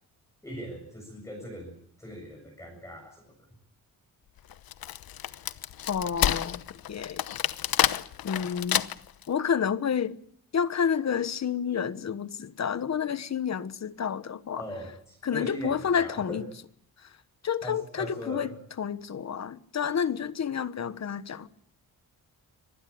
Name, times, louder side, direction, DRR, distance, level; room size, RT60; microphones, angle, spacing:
voice 1, 0.4-3.3 14.6-16.4 17.6-18.5, equal, 10° left, 7.2 m, -40 dB
Wood, 4.5-9.2, left 11 dB, 75° left, 1.1 m, -29 dB
voice 2, 5.9-7.2 8.2-8.9 9.3-10.2 10.5-14.6 15.2-16.5 17.0-17.1 17.4-21.5, left 7 dB, 45° left, 1.3 m, -30 dB
25.5 x 19.5 x 8.6 m
wide cardioid pair, 130°, 36 cm